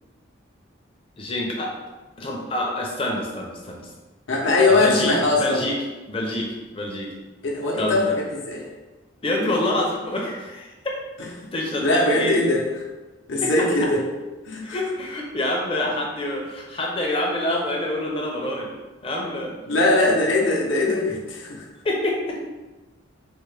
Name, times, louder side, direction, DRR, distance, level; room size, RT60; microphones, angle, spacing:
voice 1, 1.2-1.7 2.2-3.8 4.7-5.8 6.1-7.1 7.8-8.2 9.2-10.7 11.5-12.4 13.4-13.5 14.6-18.7 19.0-19.7 21.8-22.4, left 1 dB, 25° left, -1 dB, 0.6 m, -26 dB
voice 2, 4.3-5.7 7.4-8.7 11.2-11.3 11.8-12.8 13.3-14.0 14.4-14.8 19.7-21.7, left 2 dB, 70° left, -2 dB, 0.7 m, -21 dB
4.3 x 2.1 x 3.2 m, 1.2 s
head